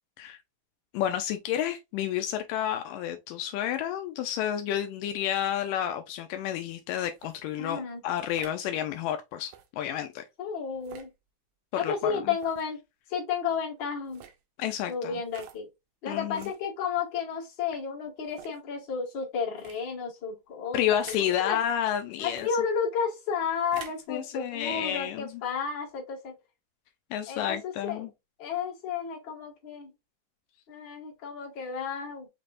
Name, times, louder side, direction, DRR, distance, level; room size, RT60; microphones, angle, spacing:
voice 1, 0.9-10.2 11.7-12.3 14.6-15.2 16.1-16.5 20.7-22.5 24.1-25.4 27.1-28.1, left 10 dB, 80° left, 2.2 m, -30 dB
sound 1, 7.1-7.4 8.2-8.6 9.4-9.7 10.8-11.1 12.3-12.7 14.0-14.4 15.3-15.6 16.3-16.6 17.3-17.4 18.2-18.6 19.6-19.8 20.9-21.3 22.3-22.5 23.6-24.1, right 9 dB, 75° right, 1.7 m, -48 dB
voice 2, 7.6-8.0 10.4-11.1 11.8-12.8 13.1-14.2 14.9-15.7 16.0-21.0 21.3-21.6 22.2-26.4 27.3-28.0 28.4-29.9 30.7-32.3, left 6 dB, 40° left, 1.9 m, -32 dB
5.8 x 3.4 x 2.5 m
omnidirectional pair, 3.9 m